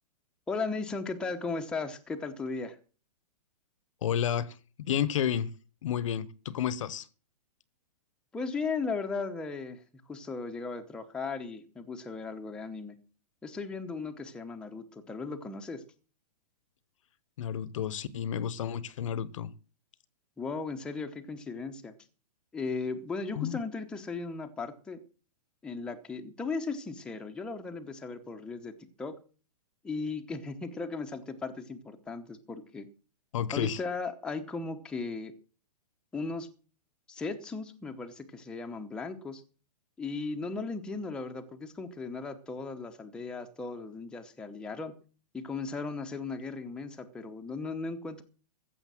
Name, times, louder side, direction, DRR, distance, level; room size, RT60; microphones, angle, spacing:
voice 1, 0.5-2.8 8.3-9.8 10.1-13.0 13.4-15.8 20.4-21.9 22.5-25.0 25.6-29.2 29.8-32.9 33.5-35.3 36.1-36.5 37.1-39.4 40.0-45.0 45.3-48.2, left 4 dB, 5° left, 0.9 m, -36 dB
voice 2, 4.0-5.5 5.8-7.1 17.4-19.5 23.3-23.6 33.3-33.8, left 9 dB, 50° left, 1.0 m, -31 dB
15.0 x 7.1 x 7.6 m
hypercardioid pair, 160°, 21 cm